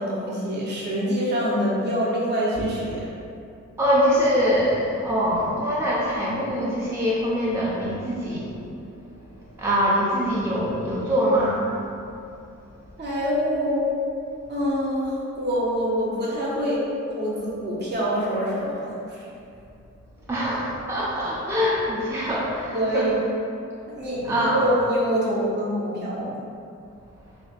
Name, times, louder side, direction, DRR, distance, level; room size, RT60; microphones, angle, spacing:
voice 1, 0.0-3.1 13.0-13.8 14.5-16.9 17.2-19.2 22.7-23.1 23.9-26.3, equal, 35° right, -6 dB, 0.8 m, -25 dB
voice 2, 3.8-8.5 9.6-11.7 20.3-23.1 24.2-24.7, equal, 10° right, -7 dB, 0.5 m, -23 dB
2.8 x 2.5 x 4.1 m, 2.6 s
cardioid pair, 85°, 29 cm